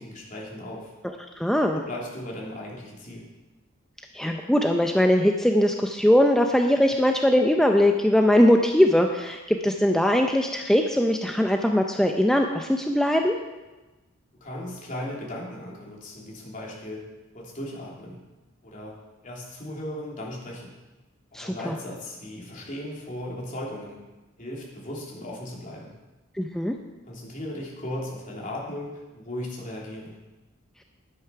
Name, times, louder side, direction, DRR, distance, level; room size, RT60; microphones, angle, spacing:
voice 1, 0.0-0.9 1.7-3.3 14.4-17.0 17.3-18.2 18.6-18.9 19.2-20.8 21.3-24.0 24.4-25.9 27.0-30.2, left 1 dB, 40° left, -3 dB, 3.1 m, -37 dB
voice 2, 1.0-1.8 4.1-13.4 21.3-21.7 26.4-26.7, left 1 dB, ahead, 3 dB, 0.5 m, -21 dB
11.5 x 9.2 x 5.7 m, 1.1 s
head